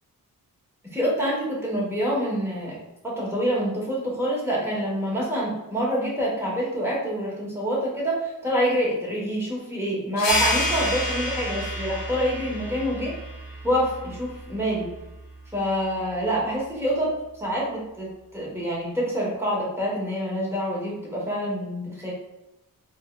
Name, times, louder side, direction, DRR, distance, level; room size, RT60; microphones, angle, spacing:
voice 1, 0.9-2.8 3.0-13.1 13.6-14.9 15.5-17.1 17.4-22.1, equal, 5° right, -6 dB, 1.1 m, -26 dB
sound 1, 10.2-15.3, left 1 dB, 75° left, 0.8 m, -29 dB
4.2 x 2.2 x 2.3 m, 0.94 s
wide cardioid pair, 95°, 36 cm